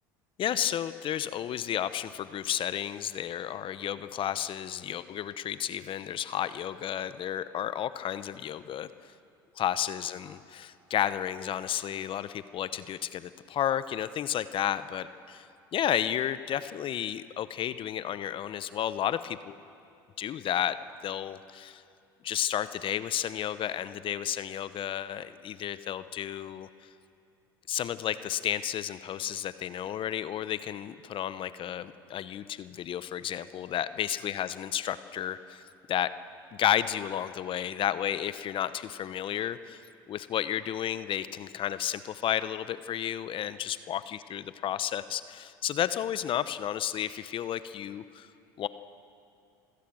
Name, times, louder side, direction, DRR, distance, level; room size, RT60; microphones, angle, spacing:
voice 1, 0.4-8.9 9.6-15.4 15.7-19.4 20.2-20.7 21.0-21.8 22.2-26.7 27.7-35.6 35.9-36.1 36.6-39.8 40.1-48.3 48.6-48.7, left 10 dB, 45° left, 14 dB, 0.9 m, -32 dB
26.0 x 16.5 x 7.8 m, 2.6 s
hypercardioid pair, 80°, 12 cm